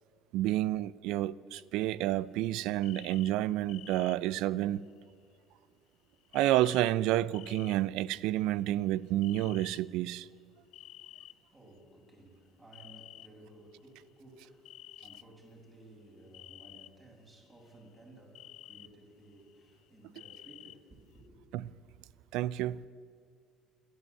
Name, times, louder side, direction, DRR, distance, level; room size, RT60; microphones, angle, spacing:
voice 1, 0.3-4.8 6.3-10.3 21.5-21.7 22.3-22.8, right 14 dB, 65° right, 0.4 m, -30 dB
sound 1, 1.6-2.2 2.5-2.6 2.7-4.1 4.9-5.0 6.2-6.9 7.2-7.7 8.2-9.0 9.2-9.8 10.7-11.8 12.7-13.3 13.9-14.0 14.7-15.2 16.3-16.9 17.3-18.0 18.3-18.9 19.3-20.8 21.2-21.3, left 14 dB, 60° left, 0.5 m, -51 dB
voice 2, 10.9-21.4, right 1 dB, 25° right, 7.4 m, -56 dB
28.0 x 11.5 x 8.4 m
hypercardioid pair, 60°, 0 cm